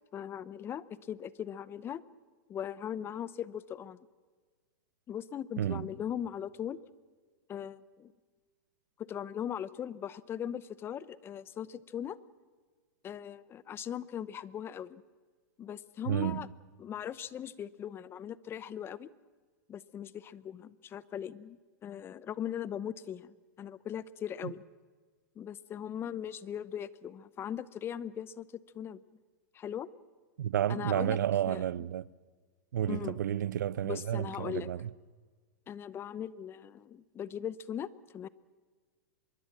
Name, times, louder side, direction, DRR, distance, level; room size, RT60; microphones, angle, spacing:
voice 1, 0.1-2.0 2.5-4.1 5.1-6.8 7.5-8.1 9.0-12.2 13.0-15.0 15.6-16.5 16.8-19.1 19.7-24.6 25.4-28.5 28.7-29.0 29.5-29.9 30.7-31.2 31.5-31.6 32.9-33.2 33.8-34.7 35.7-38.3, left 9 dB, 25° left, 0.8 m, -39 dB
voice 2, 16.1-16.4 24.4-24.5 30.4-32.1 32.7-34.9, right 11 dB, 75° right, 0.7 m, -31 dB
25.0 x 22.0 x 7.5 m
hypercardioid pair, 130°, 10 cm